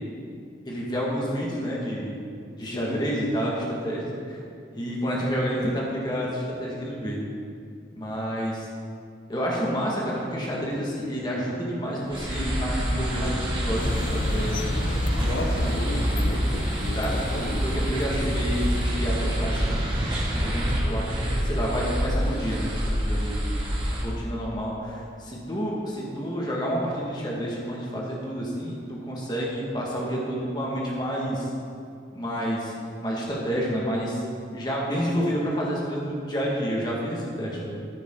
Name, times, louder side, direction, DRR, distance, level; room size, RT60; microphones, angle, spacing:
voice 1, 0.7-2.2 2.6-4.1 4.7-7.3 7.9-8.7 9.3-14.7 15.2-15.8 17.0-23.4 23.9-31.5 32.1-32.7 33.0-34.2 34.5-37.8, equal, 25° left, -4 dB, 2.0 m, -29 dB
sound 1, 12.1-24.0, equal, 30° right, 2.2 m, -26 dB
sound 2, 13.7-18.9, left 2 dB, 45° left, 0.5 m, -34 dB
voice 2, 15.2-17.6, left 1 dB, 75° left, 1 dB, 1.1 m, -34 dB
14.0 x 9.0 x 3.9 m, 2.4 s
head